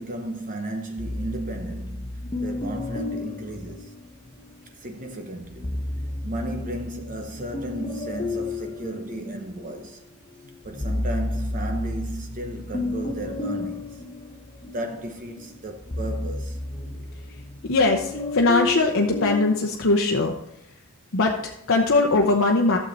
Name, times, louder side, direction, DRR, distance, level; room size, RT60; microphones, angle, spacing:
voice 1, 0.0-2.1 2.4-3.9 4.8-5.8 6.2-10.0 10.6-14.0 14.6-16.6, right 1 dB, 35° right, 0.9 m, -34 dB
sound 1, 1.0-4.5 5.4-9.9 10.3-19.6, left 2 dB, 25° left, 0.8 m, -32 dB
voice 2, 17.6-20.3 21.1-22.8, left 3 dB, 60° left, 0.8 m, -21 dB
12.0 x 7.4 x 4.0 m
head